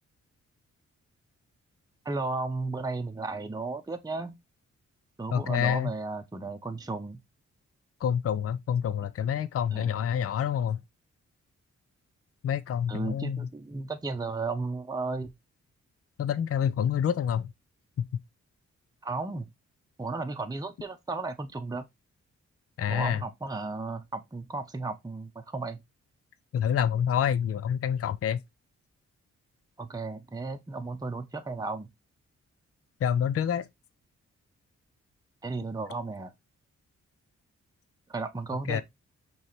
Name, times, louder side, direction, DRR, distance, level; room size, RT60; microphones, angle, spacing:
voice 1, 2.0-4.3 5.2-7.2 9.7-9.9 12.9-15.3 19.0-19.5 20.0-21.9 22.9-25.8 29.8-31.9 35.4-36.3 38.1-38.8, right 3 dB, 15° right, 0.7 m, -34 dB
voice 2, 5.3-5.9 8.0-10.8 12.4-13.5 16.2-17.5 18.0-18.1 22.8-23.2 26.5-28.4 33.0-33.7 38.7-38.8, left 8 dB, 50° left, 0.5 m, -27 dB
5.5 x 3.1 x 3.1 m
cardioid pair, 65°, 29 cm